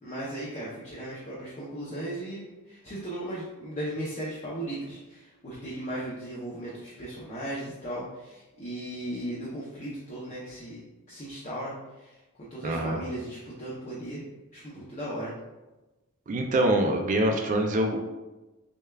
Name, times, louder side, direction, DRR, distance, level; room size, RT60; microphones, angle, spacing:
voice 1, 0.0-14.2 14.5-15.3, right 1 dB, 35° left, -7 dB, 0.6 m, -37 dB
voice 2, 12.6-13.0 16.3-18.0, right 1 dB, 35° right, 3 dB, 0.3 m, -25 dB
6.3 x 2.2 x 2.2 m, 1.1 s
head